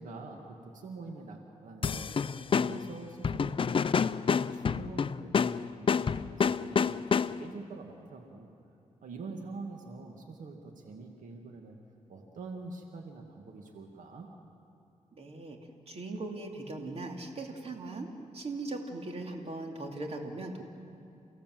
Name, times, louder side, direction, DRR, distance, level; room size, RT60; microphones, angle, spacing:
voice 1, 0.0-2.2 2.5-4.1 4.5-8.5 9.0-11.8 12.1-14.3, right 3 dB, 80° right, 2 dB, 2.2 m, -45 dB
sound 1, 1.8-7.6, left 6 dB, 40° left, 0.5 m, -29 dB
voice 2, 15.2-15.6 15.9-18.1 18.3-20.6, right 2 dB, 50° right, 2 dB, 2.7 m, -39 dB
29.5 x 17.0 x 7.8 m, 2.7 s
cardioid pair, 85°, 13 cm